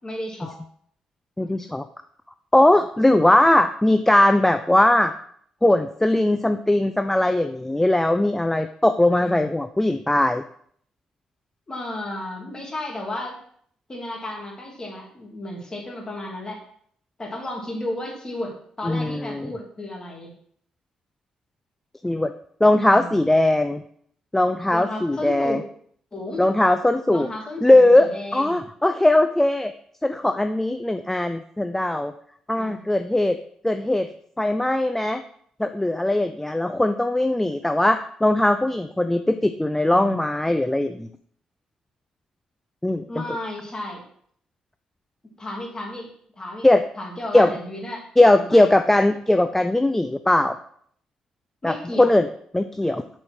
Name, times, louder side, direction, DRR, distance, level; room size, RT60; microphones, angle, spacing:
voice 1, 0.0-0.6 9.2-9.5 11.7-13.4 13.9-16.6 17.2-20.3 22.9-23.3 24.7-25.6 26.1-26.5 27.1-28.6 32.5-32.8 39.9-40.2 43.1-44.0 45.4-46.1 46.4-46.7 47.0-48.0 48.3-48.6 51.6-52.1, left 1 dB, 30° left, 0 dB, 2.9 m, -33 dB
voice 2, 1.4-1.9 2.5-5.1 5.6-10.4 18.8-19.5 22.0-22.3 22.6-23.8 24.3-25.6 26.4-27.3 27.6-29.7 30.0-32.1 32.5-33.4 33.6-34.1 34.4-35.2 35.6-41.1 42.8-43.2 46.6-46.9 47.3-47.5 48.2-50.6 51.6-52.3 52.5-53.0, left 1 dB, 10° left, 9 dB, 0.5 m, -19 dB
7.0 x 5.2 x 6.1 m, 0.62 s
figure-of-eight pair, 40°, 3 cm